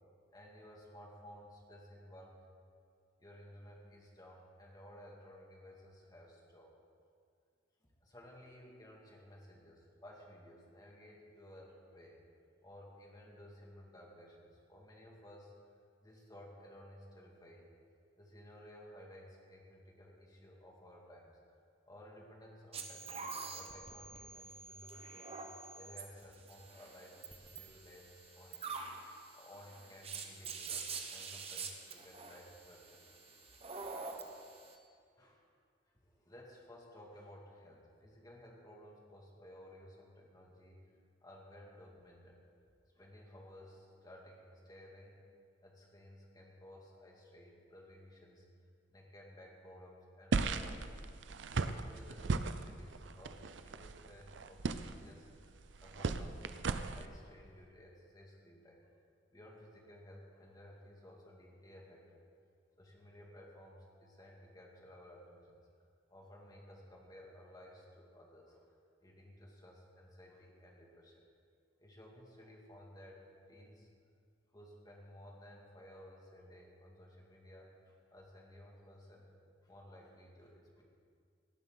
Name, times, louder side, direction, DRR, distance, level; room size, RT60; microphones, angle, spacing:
voice 1, 0.3-2.4 3.2-6.7 7.8-12.2 12.6-17.7 18.2-21.4 21.8-25.4 25.7-28.8 29.3-33.2 35.1-35.5 35.9-40.9 41.2-42.4 42.9-45.2 45.6-48.5 48.9-51.1 51.5-58.8 59.3-62.2 62.8-65.6 66.1-68.7 69.0-71.3 71.8-73.9 74.5-79.3 79.6-80.8, left 1 dB, 20° left, -2 dB, 2.2 m, -56 dB
sound 1, 22.7-34.8, right 4 dB, 35° right, 1.1 m, -46 dB
sound 2, 50.3-57.1, right 4 dB, 80° right, 0.6 m, -38 dB
18.0 x 11.5 x 3.9 m, 2.2 s
head